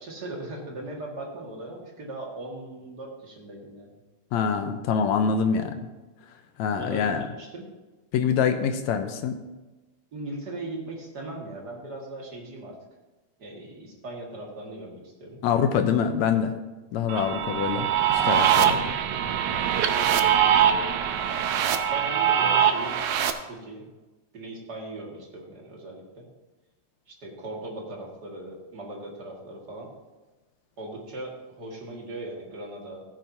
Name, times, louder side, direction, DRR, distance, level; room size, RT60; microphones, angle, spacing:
voice 1, 0.0-3.9 6.7-7.7 10.1-12.8 13.4-15.4 19.8-20.9 21.7-23.0 23.4-23.9 24.3-26.3 27.1-29.9 30.8-33.0, right 2 dB, 35° right, -2 dB, 2.2 m, -39 dB
voice 2, 4.3-5.8 6.6-7.2 8.1-9.4 15.4-16.5 16.9-18.8, left 7 dB, 75° left, 7 dB, 1.9 m, -25 dB
sound 1, 17.1-23.3, right 9 dB, 85° right, 1.3 m, -23 dB
16.5 x 9.2 x 2.8 m, 1.2 s
omnidirectional pair, 3.5 m